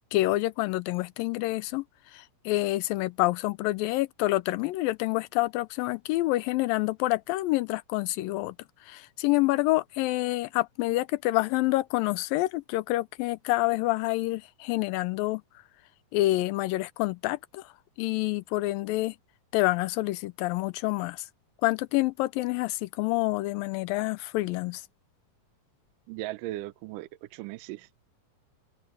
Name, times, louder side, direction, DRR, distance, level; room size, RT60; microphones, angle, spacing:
voice 1, 0.1-1.8 2.1-8.6 8.8-15.4 16.1-17.7 18.0-19.2 19.5-21.3 21.6-24.8, left 18 dB, 85° left, 2.3 m, -27 dB
voice 2, 26.1-27.9, right 17 dB, 75° right, 2.1 m, -37 dB
omnidirectional pair, 4.2 m